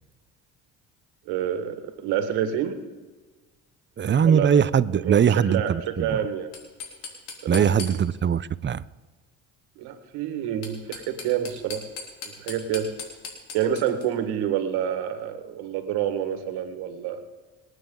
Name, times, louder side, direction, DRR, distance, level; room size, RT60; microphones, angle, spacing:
voice 1, 1.3-2.8 4.2-4.5 5.0-6.5 7.4-7.9 9.8-11.9 12.4-12.9 13.5-17.2, right 9 dB, 85° right, 8 dB, 1.8 m, -28 dB
voice 2, 4.0-6.2 7.5-8.8, right 7 dB, 30° right, 17 dB, 0.6 m, -21 dB
sound 1, 6.5-8.3 10.4-14.1, left 5 dB, 85° left, 3.4 m, -39 dB
27.0 x 9.3 x 3.9 m, 1.3 s
supercardioid pair, 75°, 38 cm